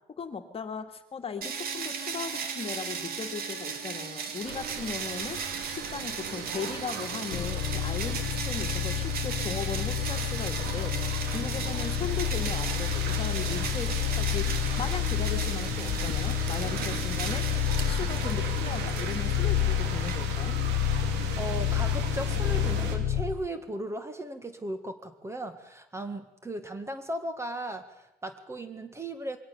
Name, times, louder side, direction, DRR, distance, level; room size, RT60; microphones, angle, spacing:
voice 1, 0.2-5.4 5.7-14.4 14.8-17.4 17.7-20.6, left 5 dB, 35° left, 6 dB, 2.1 m, -37 dB
sound 1, 1.4-20.8, right 6 dB, 60° right, 2.9 m, -37 dB
sound 2, 4.4-23.0, right 6 dB, 90° right, 2.6 m, -38 dB
sound 3, 7.3-23.5, left 11 dB, 75° left, 1.1 m, -29 dB
voice 2, 21.4-29.4, right 1 dB, 15° right, 9 dB, 1.9 m, -36 dB
22.5 x 17.5 x 7.0 m, 0.90 s
cardioid pair, 110°, 17 cm